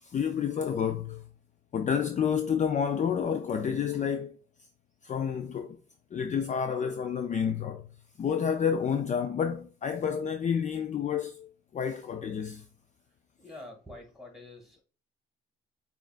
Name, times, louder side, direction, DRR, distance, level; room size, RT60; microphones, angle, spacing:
voice 1, 0.0-1.3 1.7-4.4 5.0-5.8 6.1-7.9 8.2-12.7, left 7 dB, 40° left, 0.4 m, -29 dB
voice 2, 13.4-14.8, left 2 dB, ahead, 2.0 m, -46 dB
6.5 x 2.4 x 2.4 m
cardioid pair, 90°, 20 cm